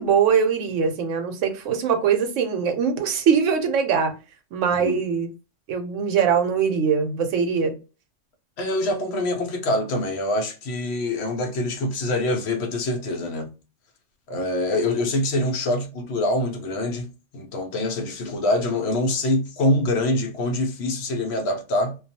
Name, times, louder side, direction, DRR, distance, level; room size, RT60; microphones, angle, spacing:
voice 1, 0.0-4.1 4.5-5.3 5.7-7.8, right 6 dB, 90° right, 1.0 m, -22 dB
voice 2, 8.6-13.5 14.3-22.0, left 1 dB, 65° left, 0.8 m, -25 dB
2.3 x 2.3 x 2.6 m
omnidirectional pair, 1.3 m